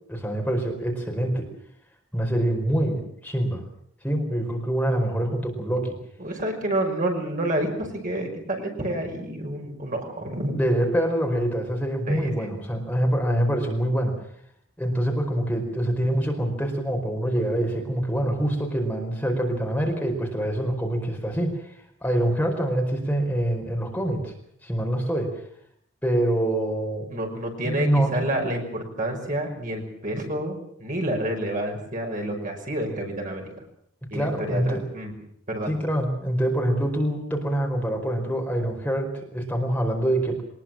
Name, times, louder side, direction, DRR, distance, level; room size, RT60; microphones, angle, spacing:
voice 1, 0.1-1.5 2.1-3.6 4.0-6.0 10.5-14.1 14.8-21.6 22.0-24.3 24.6-25.3 26.0-27.1 27.6-28.3 34.1-34.8 35.7-40.4, right 1 dB, 10° left, 1 dB, 4.7 m, -25 dB
voice 2, 6.2-10.6 12.1-12.5 27.1-33.5 34.1-35.1 35.5-35.7, right 1 dB, 40° right, 2 dB, 5.8 m, -29 dB
23.5 x 20.5 x 7.5 m, 0.68 s
head